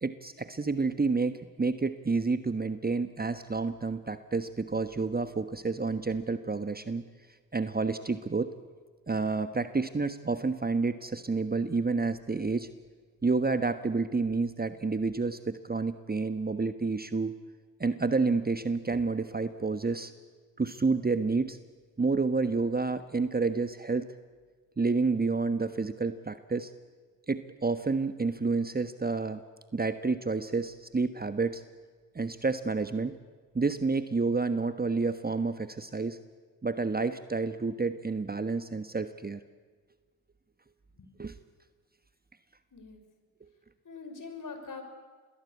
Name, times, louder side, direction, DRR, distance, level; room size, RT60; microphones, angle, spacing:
voice 1, 0.0-7.1 7.5-8.5 9.1-12.7 13.2-17.4 17.8-20.1 20.6-21.6 22.0-24.1 24.8-26.7 27.3-29.4 29.7-31.6 32.1-33.2 33.5-36.2 36.6-39.4 41.2-41.3, right 4 dB, 20° right, 10 dB, 1.4 m, -29 dB
voice 2, 43.8-44.8, left 4 dB, 40° left, 7 dB, 5.9 m, -43 dB
28.5 x 21.5 x 8.4 m, 1.5 s
hypercardioid pair, 45°, 45 cm